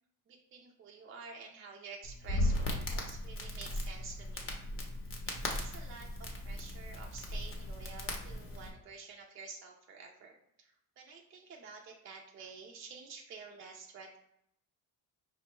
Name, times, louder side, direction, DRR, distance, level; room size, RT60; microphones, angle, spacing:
voice 1, 0.3-4.5 5.5-14.2, right 5 dB, 35° right, 0 dB, 0.4 m, -50 dB
Crackle, 2.0-8.7, left 1 dB, 35° left, 0.7 m, -37 dB
4.9 x 2.2 x 3.0 m, 0.74 s
cardioid pair, 115°, 39 cm